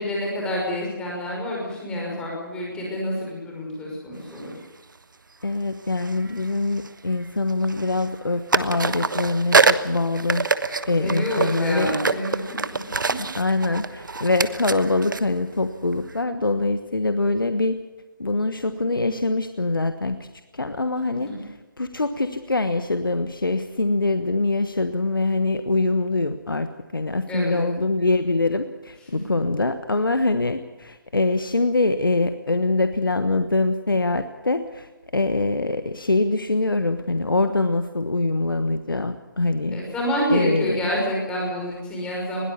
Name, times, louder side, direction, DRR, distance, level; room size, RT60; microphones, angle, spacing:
voice 1, 0.0-4.5 11.0-12.4 13.1-13.2 21.3-21.4 27.3-27.6 39.7-42.4, equal, 10° left, -3 dB, 5.9 m, -27 dB
sound 1, 4.3-4.5 5.9-7.2 7.5-8.2 8.5-16.2, right 4 dB, 65° right, 1.2 m, -26 dB
voice 2, 5.4-10.5 10.8-11.9 13.2-17.8 18.2-20.3 20.5-21.3 21.8-39.9 40.3-40.8, left 2 dB, 80° left, 9 dB, 1.3 m, -24 dB
21.0 x 18.0 x 7.1 m, 1.1 s
figure-of-eight pair, 145°, 11 cm